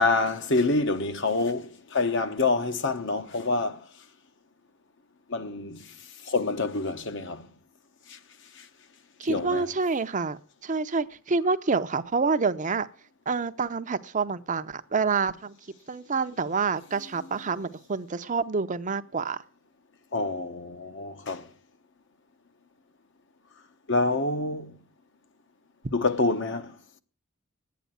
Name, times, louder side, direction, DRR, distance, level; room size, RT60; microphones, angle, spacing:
voice 1, 0.0-3.9 5.3-5.9 6.2-7.5 8.1-8.2 8.6-8.7 9.2-9.7 20.1-21.5 23.9-24.8 25.9-26.7, left 3 dB, 60° left, 1.1 m, -27 dB
voice 2, 9.2-12.9 13.3-15.6 15.9-19.4, right 4 dB, 40° right, 0.6 m, -27 dB
11.0 x 9.4 x 9.3 m
head